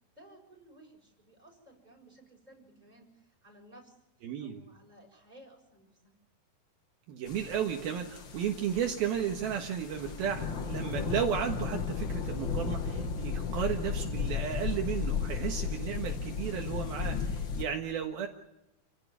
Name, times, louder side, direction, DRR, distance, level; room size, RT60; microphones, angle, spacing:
voice 1, 0.1-4.0 4.4-6.1, right 1 dB, 10° right, 0 dB, 6.9 m, -57 dB
voice 2, 4.2-4.6 7.1-18.3, right 8 dB, 70° right, 2 dB, 3.3 m, -34 dB
sound 1, 7.3-17.6, left 6 dB, 50° left, 1.4 m, -35 dB
29.5 x 16.5 x 9.6 m, 0.94 s
omnidirectional pair, 4.6 m